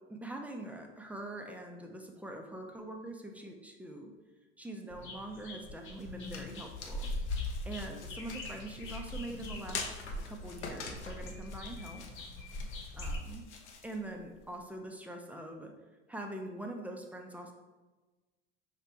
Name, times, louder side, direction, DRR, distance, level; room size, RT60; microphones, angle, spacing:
voice 1, 0.1-4.1 4.6-7.1 7.4-9.8 10.2-12.0 13.0-13.4 13.8-15.7 16.1-17.5, right 1 dB, 5° right, 2 dB, 0.6 m, -43 dB
sound 1, 4.9-13.2, left 2 dB, 35° left, 1.1 m, -41 dB
sound 2, 5.6-14.6, left 4 dB, 90° left, 0.7 m, -47 dB
4.8 x 3.1 x 3.4 m, 1.2 s
hypercardioid pair, 80°, 33 cm